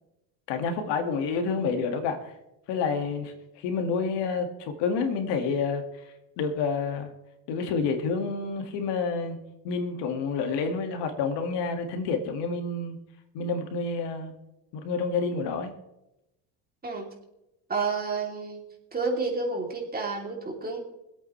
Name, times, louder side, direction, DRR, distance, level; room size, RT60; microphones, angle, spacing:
voice 1, 0.5-2.3 2.7-6.1 6.4-7.1 7.5-9.4 9.6-13.0 13.3-14.3 14.7-15.7, left 4 dB, 65° left, 5 dB, 2.1 m, -29 dB
voice 2, 17.7-18.6 18.9-20.8, right 4 dB, 20° right, 0 dB, 3.1 m, -30 dB
25.5 x 8.7 x 3.3 m, 0.89 s
cardioid pair, 125°, 45 cm